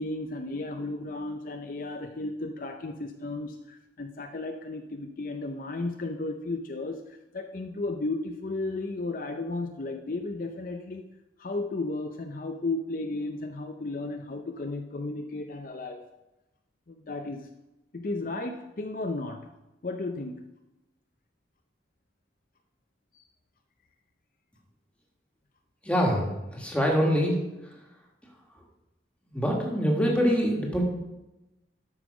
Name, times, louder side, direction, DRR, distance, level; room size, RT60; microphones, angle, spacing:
voice 1, 0.0-11.1 11.4-16.1 16.9-17.5 17.9-19.5 19.8-20.4 23.1-23.2, left 2 dB, 50° left, 5 dB, 0.6 m, -34 dB
voice 2, 25.8-27.4 27.6-27.8 29.3-30.8, equal, 5° left, -1 dB, 1.8 m, -25 dB
12.5 x 5.5 x 5.0 m, 0.99 s
head